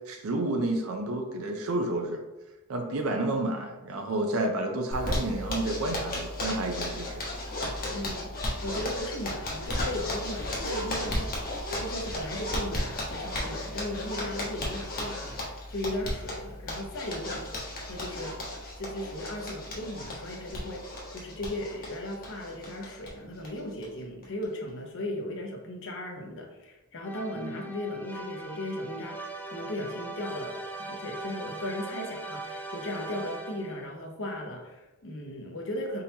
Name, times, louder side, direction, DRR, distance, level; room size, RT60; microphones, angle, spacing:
voice 1, 0.0-2.2 2.7-7.2 27.4-27.5, right 2 dB, 75° right, 3 dB, 0.6 m, -30 dB
Zipper (clothing), 4.9-23.1 23.4-23.5 23.8-23.9 24.2-24.7, left 1 dB, 45° left, 1.1 m, -34 dB
voice 2, 7.9-17.5 17.8-18.4 18.8-36.0, left 1 dB, 65° left, 1 dB, 0.8 m, -37 dB
sound 1, 27.0-33.9, right 2 dB, 10° left, 0.4 m, -40 dB
4.2 x 3.8 x 2.8 m, 1.1 s
head